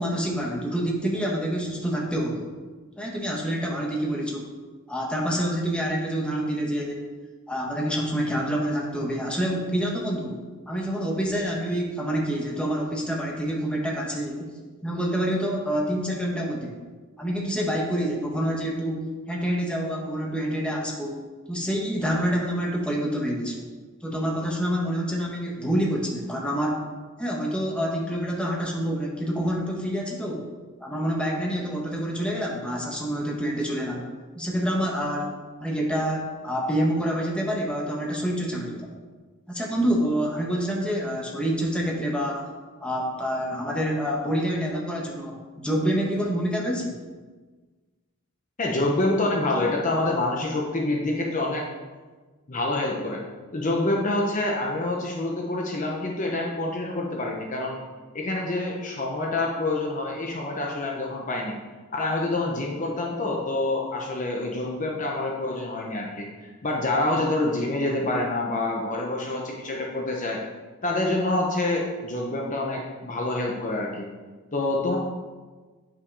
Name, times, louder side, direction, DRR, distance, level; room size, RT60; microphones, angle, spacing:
voice 1, 0.0-2.5 3.0-4.5 4.9-7.0 7.5-14.5 14.8-16.8 17.2-21.2 21.5-23.7 24.0-26.8 27.2-30.5 30.8-34.0 34.3-35.3 35.6-38.9 39.5-42.5 42.8-47.0, equal, 5° left, -2 dB, 1.3 m, -27 dB
voice 2, 48.6-51.6 52.5-53.2 53.5-57.8 58.1-61.6 61.9-70.4 70.8-74.1 74.5-75.0, left 2 dB, 35° left, -1 dB, 0.9 m, -27 dB
9.4 x 6.0 x 4.8 m, 1.4 s
head